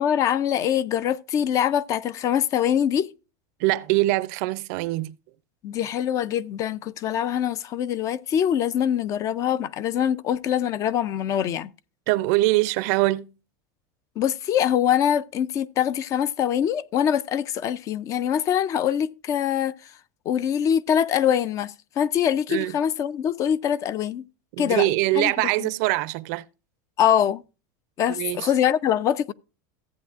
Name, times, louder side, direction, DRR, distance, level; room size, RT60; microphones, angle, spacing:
voice 1, 0.0-3.1 5.6-11.7 14.2-19.8 20.3-24.2 24.6-24.9 25.2-25.3 25.6-25.7 27.0-27.4 28.0-29.3, left 9 dB, 30° left, 0.4 m, -23 dB
voice 2, 3.6-5.1 12.1-13.3 22.5-22.7 24.6-26.4 28.1-28.5, right 19 dB, 60° right, 0.5 m, -23 dB
15.0 x 8.2 x 2.4 m
supercardioid pair, 150°, 10 cm